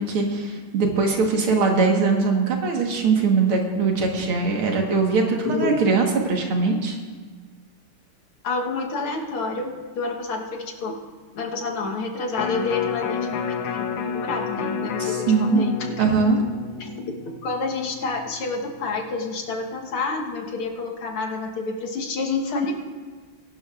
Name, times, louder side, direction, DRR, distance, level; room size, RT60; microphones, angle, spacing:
voice 1, 0.0-7.0 15.0-15.7 16.0-16.4, right 4 dB, 80° right, 1 dB, 2.4 m, -21 dB
voice 2, 8.4-10.9 11.3-16.1 16.8-16.9 17.4-22.7, left 3 dB, 85° left, 1 dB, 2.2 m, -28 dB
Electric guitar, 12.3-18.6 19.0-19.1, left 6 dB, 70° left, 1.3 m, -30 dB
21.0 x 12.0 x 2.5 m, 1.5 s
omnidirectional pair, 2.3 m